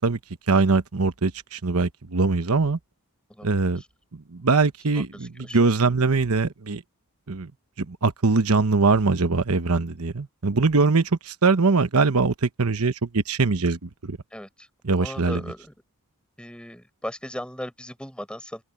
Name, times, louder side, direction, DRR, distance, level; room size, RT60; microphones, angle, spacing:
voice 1, 0.5-2.8 3.4-3.8 4.1-6.8 7.3-7.5 7.8-14.2 14.8-15.4, right 3 dB, 75° right, 1.0 m, -22 dB
voice 2, 4.9-5.6 14.3-14.7 14.9-15.7 16.4-18.6, equal, 5° left, 7.5 m, -37 dB
open air
head